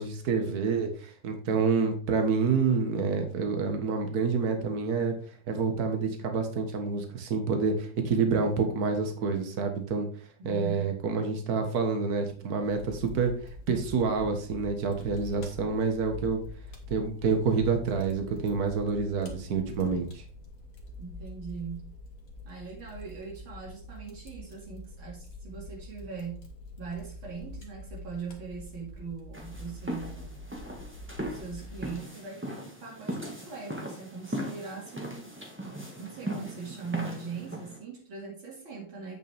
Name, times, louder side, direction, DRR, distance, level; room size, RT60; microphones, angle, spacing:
voice 1, 0.0-5.1 5.5-10.1 10.5-13.3 13.7-16.4 16.9-20.2, right 4 dB, 50° right, 5 dB, 1.8 m, -28 dB
voice 2, 10.4-10.9 21.0-21.9 22.5-26.5 26.8-30.5 31.3-35.4 36.0-39.2, right 5 dB, 75° right, -3 dB, 3.0 m, -41 dB
Fire, 12.6-31.9, left 1 dB, 45° left, 1.9 m, -45 dB
sound 1, 29.3-37.8, equal, 5° right, 1.4 m, -38 dB
8.5 x 6.8 x 3.5 m, 0.43 s
omnidirectional pair, 2.2 m